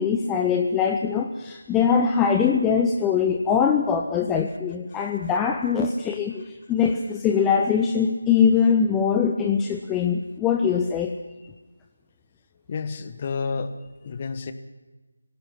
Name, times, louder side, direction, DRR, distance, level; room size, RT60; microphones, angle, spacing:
voice 1, 0.0-11.1, left 6 dB, 10° left, 3 dB, 0.7 m, -22 dB
voice 2, 12.7-14.5, left 4 dB, 30° left, 10 dB, 1.4 m, -31 dB
24.5 x 17.5 x 6.0 m, 1.2 s
figure-of-eight pair, 160°, 0 cm